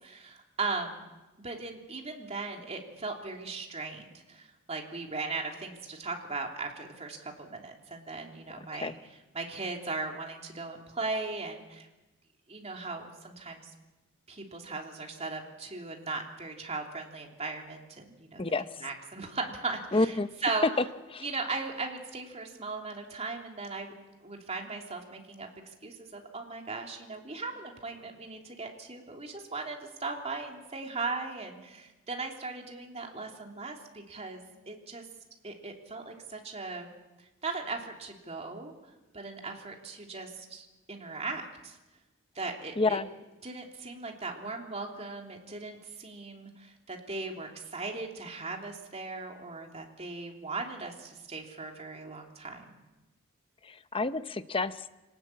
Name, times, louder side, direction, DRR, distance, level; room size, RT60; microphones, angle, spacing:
voice 1, 0.0-1.1 1.4-9.0 9.3-11.9 12.5-13.7 14.3-18.4 18.8-20.7 21.2-23.9 24.2-25.5 25.8-35.1 35.4-36.9 37.2-38.7 39.1-41.8 42.3-43.0 43.4-52.8, right 3 dB, 30° right, 1 dB, 3.3 m, -38 dB
voice 2, 19.9-20.3 21.1-21.3 42.8-43.1 53.6-54.8, left 3 dB, 25° left, 11 dB, 0.8 m, -29 dB
26.0 x 19.0 x 8.6 m, 1.1 s
head